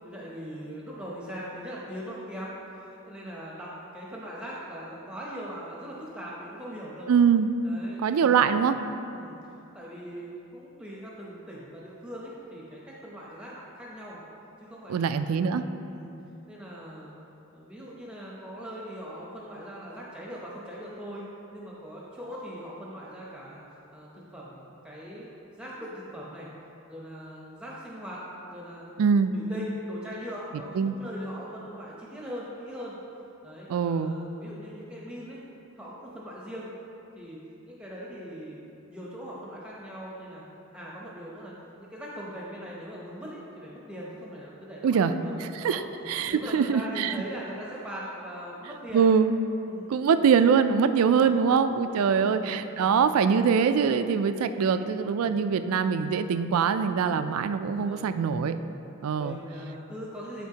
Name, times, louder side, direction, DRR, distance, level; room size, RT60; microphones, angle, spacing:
voice 1, 0.0-7.1 7.6-8.6 9.1-9.4 9.7-14.2 14.6-16.1 16.5-17.1 17.5-21.2 21.5-23.6 23.9-25.3 25.6-26.5 26.9-28.9 29.3-32.9 33.4-35.4 35.8-36.7 37.1-37.4 37.6-38.6 38.9-40.4 40.7-45.3 45.6-45.8 46.3-49.0 49.6-50.0 51.0-51.4 51.9-52.4 52.8-53.0 54.5-54.8 55.2-55.4 57.6-58.1 59.1-60.5, equal, 5° right, -6 dB, 0.7 m, -41 dB
voice 2, 7.1-7.5 8.0-8.8 14.9-15.6 29.0-29.3 30.8-31.0 33.7-34.1 44.8-45.1 45.4-47.1 48.9-49.3 49.9-58.6 59.0-59.4, right 6 dB, 75° right, 10 dB, 0.3 m, -23 dB
12.5 x 4.2 x 2.8 m, 2.8 s
head